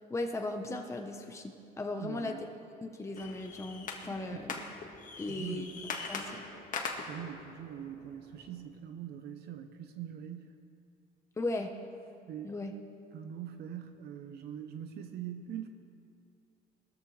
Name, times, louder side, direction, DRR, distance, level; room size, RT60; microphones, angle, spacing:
voice 1, 0.1-2.3 2.8-4.5 5.2-5.7 6.1-6.4 11.4-11.7 12.4-12.7, left 2 dB, 15° left, 3 dB, 1.1 m, -37 dB
voice 2, 2.0-2.4 4.1-4.4 5.3-5.8 7.1-10.6 12.3-12.6 13.1-15.7, right 9 dB, 70° right, 6 dB, 0.9 m, -43 dB
sound 1, 3.1-8.6, left 4 dB, 50° left, 1.7 m, -42 dB
20.5 x 14.0 x 3.3 m, 2.4 s
cardioid pair, 110°, 17 cm